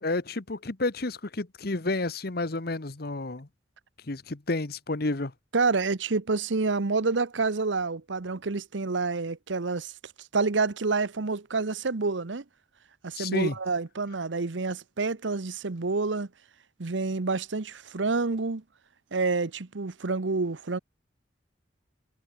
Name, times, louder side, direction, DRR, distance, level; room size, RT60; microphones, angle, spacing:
voice 1, 0.0-3.5 4.1-5.3 13.1-13.5, left 2 dB, 55° left, 1.3 m, -30 dB
voice 2, 5.5-9.9 10.3-12.4 13.0-16.3 16.8-18.6 19.1-20.8, right 3 dB, 85° right, 0.9 m, -28 dB
head